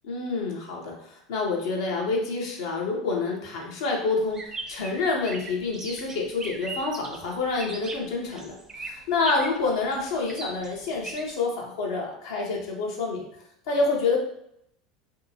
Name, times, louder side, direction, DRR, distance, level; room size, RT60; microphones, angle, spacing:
voice 1, 0.1-13.3 13.7-14.2, left 3 dB, 65° left, -2 dB, 0.7 m, -28 dB
sound 1, 4.3-11.3, right 3 dB, 20° right, 0.5 m, -39 dB
2.7 x 2.3 x 2.7 m, 0.75 s
figure-of-eight pair, 80°, 3 cm